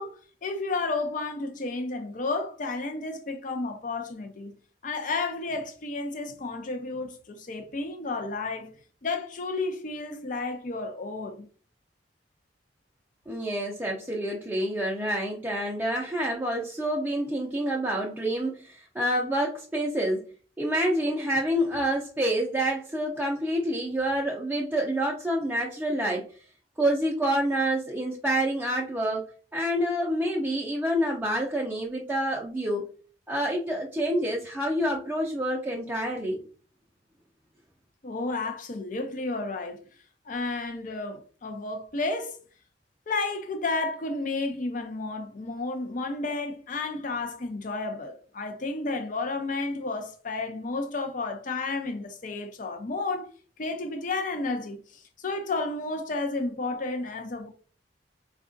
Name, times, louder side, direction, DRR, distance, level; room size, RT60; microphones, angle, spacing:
voice 1, 0.0-4.5 4.8-8.7 9.0-11.5 38.0-39.8 40.3-42.4 43.1-53.3 53.6-57.5, left 3 dB, 50° left, 0.5 m, -32 dB
voice 2, 13.3-20.2 20.6-26.3 26.8-32.9 33.3-36.4, right 1 dB, 10° right, 0.5 m, -27 dB
4.5 x 2.3 x 2.5 m
head